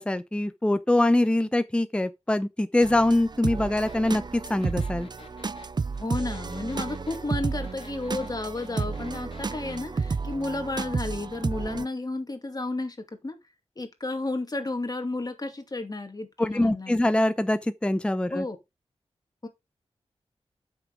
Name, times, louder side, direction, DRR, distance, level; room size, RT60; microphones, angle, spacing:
voice 1, 0.0-5.1 16.4-18.4, left 1 dB, 10° left, 0.7 m, -24 dB
sound 1, 2.8-11.9, right 4 dB, 40° right, 0.5 m, -32 dB
sound 2, 3.9-9.8, left 4 dB, 50° left, 2.6 m, -49 dB
voice 2, 6.0-13.0 13.2-13.4 13.8-17.0 18.3-18.6 19.4-19.5, left 2 dB, 35° left, 2.5 m, -32 dB
7.8 x 6.3 x 4.8 m
wide cardioid pair, 70°, 11 cm